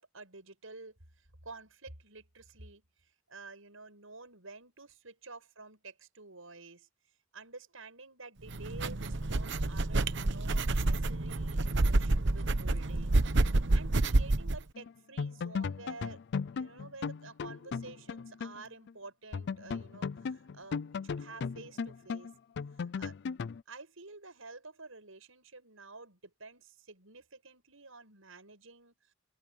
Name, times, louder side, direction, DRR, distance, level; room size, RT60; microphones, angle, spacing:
voice 1, 0.0-6.9 7.3-16.2 16.5-22.3 22.7-23.2 23.7-29.1, right 3 dB, 90° right, 6.8 m, -50 dB
sound 1, 8.5-14.6, right 2 dB, 60° right, 1.0 m, -28 dB
sound 2, 14.7-14.9 15.2-18.6 18.9-19.0 19.3-23.6, left 5 dB, 60° left, 0.4 m, -36 dB
head